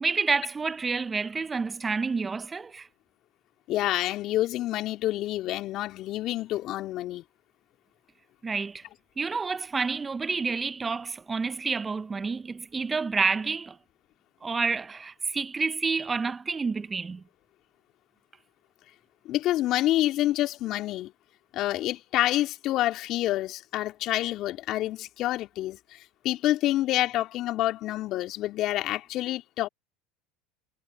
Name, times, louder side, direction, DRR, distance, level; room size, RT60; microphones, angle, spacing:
voice 1, 0.0-2.9 8.4-8.8 9.2-13.7 14.4-17.2, right 4 dB, 20° right, 0.6 m, -29 dB
voice 2, 3.7-7.2 19.2-21.1 21.5-29.7, left 15 dB, 50° left, 2.7 m, -28 dB
hypercardioid pair, 80°, 0 cm